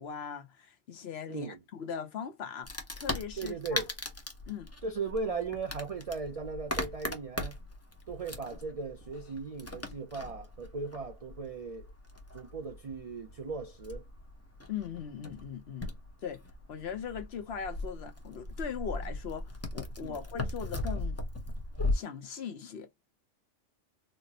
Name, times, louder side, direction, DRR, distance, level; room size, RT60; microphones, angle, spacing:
voice 1, 0.0-3.8 4.5-4.7 14.7-15.9 16.2-16.4 16.7-21.2 21.9-22.9, left 7 dB, 60° left, 1.0 m, -40 dB
voice 2, 1.3-1.6 3.4-3.9 4.8-7.6 8.1-11.9 12.3-14.0 20.0-20.2, right 4 dB, 60° right, 0.3 m, -37 dB
Wood, 2.6-21.9, left 2 dB, 15° left, 0.5 m, -39 dB
4.2 x 2.0 x 2.7 m
omnidirectional pair, 1.3 m